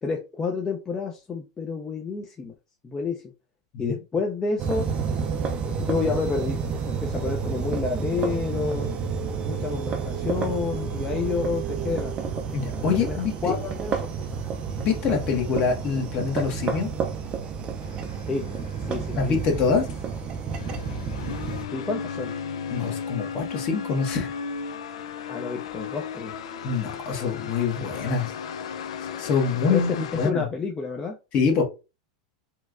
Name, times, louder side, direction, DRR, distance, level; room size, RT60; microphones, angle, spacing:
voice 1, 0.0-2.5 2.8-3.3 3.8-4.9 5.8-6.6 6.9-8.9 9.5-12.2 12.8-14.5 18.3-18.5 18.8-19.4 21.7-22.3 25.3-26.3 29.7-29.8 30.2-31.2, left 4 dB, 20° left, 1 dB, 0.5 m, -29 dB
sound 1, 4.6-21.7, right 6 dB, 30° right, 0.5 m, -30 dB
voice 2, 12.5-13.5 14.8-16.9 19.1-19.9 22.7-24.3 26.6-28.3 29.2-30.5 31.3-31.6, left 5 dB, 40° left, 2 dB, 1.2 m, -25 dB
sound 2, 17.8-30.3, left 6 dB, 80° left, 0.5 m, -36 dB
4.3 x 2.2 x 2.5 m, 0.29 s
hypercardioid pair, 120°, 3 cm